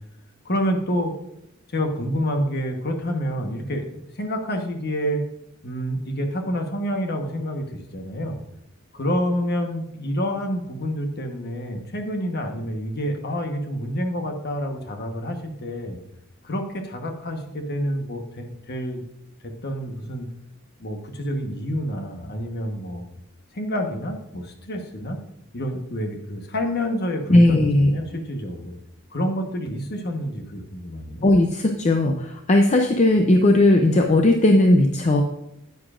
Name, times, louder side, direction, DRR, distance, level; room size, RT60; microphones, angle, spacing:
voice 1, 0.4-1.1 1.7-5.2 5.6-8.4 8.9-16.0 16.4-19.0 19.6-20.3 20.8-23.1 23.5-25.2 25.5-28.7 29.1-31.3, equal, 50° left, 4 dB, 1.2 m, -28 dB
voice 2, 27.3-27.9 31.2-35.2, left 1 dB, 35° left, 3 dB, 0.5 m, -17 dB
9.7 x 9.4 x 2.5 m, 0.81 s
head